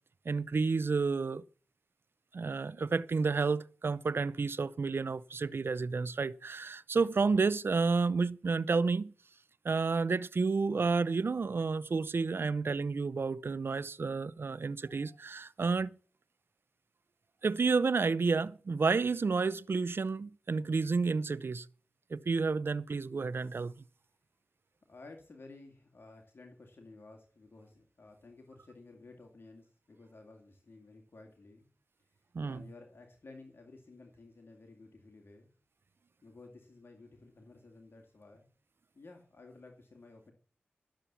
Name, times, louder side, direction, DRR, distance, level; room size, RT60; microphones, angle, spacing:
voice 1, 0.3-1.4 2.3-9.1 9.6-15.9 17.4-21.7 22.1-23.7 32.3-32.6, right 4 dB, 65° right, 0.6 m, -30 dB
voice 2, 24.9-31.7 32.1-32.2 32.5-35.5 36.2-38.5 38.9-40.3, left 3 dB, 60° left, 2.2 m, -54 dB
12.5 x 7.3 x 6.9 m
cardioid pair, 40°, 4 cm